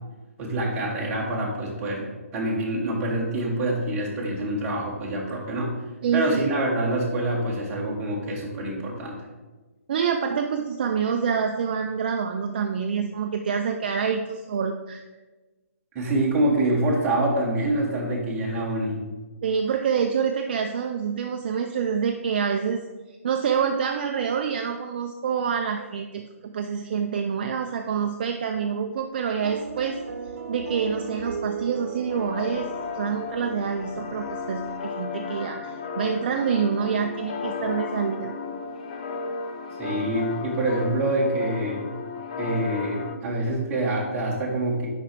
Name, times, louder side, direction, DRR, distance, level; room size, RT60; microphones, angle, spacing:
voice 1, 0.4-5.7 6.1-9.1 15.9-19.0 39.8-41.8 42.4-44.9, right 1 dB, 15° right, -4 dB, 1.3 m, -26 dB
voice 2, 6.0-6.4 9.9-15.0 19.4-22.8 23.1-30.0 30.5-38.3, right 6 dB, 40° right, 4 dB, 0.4 m, -27 dB
sound 1, 29.4-34.8, right 5 dB, 70° right, 0.8 m, -37 dB
sound 2, 32.1-43.2, left 5 dB, 30° left, 0.5 m, -34 dB
5.9 x 5.1 x 4.5 m, 1.2 s
hypercardioid pair, 160°, 8 cm